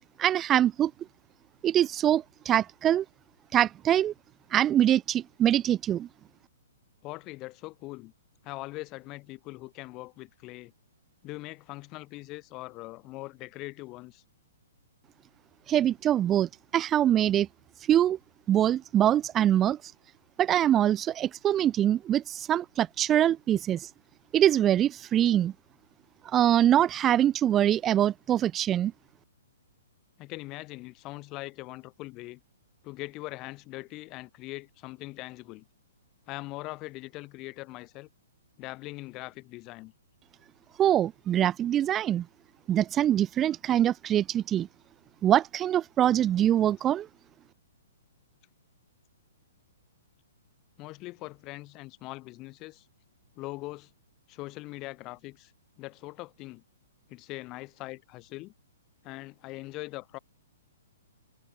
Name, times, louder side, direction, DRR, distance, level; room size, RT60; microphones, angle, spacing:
voice 1, 0.2-0.9 1.6-3.0 3.5-4.1 4.5-6.1 15.7-17.5 17.8-18.2 18.5-19.9 20.4-23.9 24.3-25.5 26.2-28.9 40.8-42.3 42.7-44.7 45.2-47.1, right 11 dB, 20° right, 0.7 m, -24 dB
voice 2, 7.0-8.1 8.4-10.7 11.2-14.2 30.2-32.4 32.8-35.6 36.3-38.1 38.6-39.9 50.8-52.8 53.3-53.9 54.3-55.5 55.8-56.6 57.1-58.5 59.0-60.2, left 21 dB, 30° left, 4.9 m, -41 dB
hypercardioid pair, 150°, 0 cm